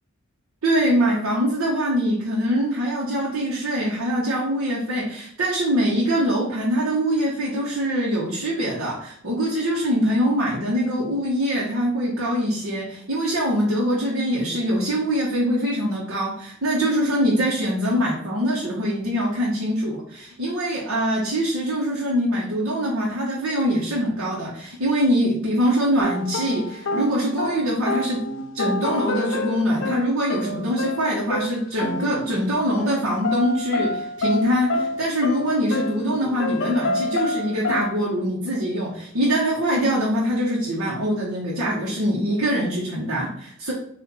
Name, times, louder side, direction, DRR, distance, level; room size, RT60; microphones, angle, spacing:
voice 1, 0.6-28.2 28.5-43.7, equal, 80° right, -5 dB, 1.0 m, -23 dB
sound 1, 26.0-32.5 32.8-33.0 33.2-37.9, left 2 dB, 60° left, 0.5 m, -28 dB
4.2 x 2.5 x 4.1 m, 0.65 s
head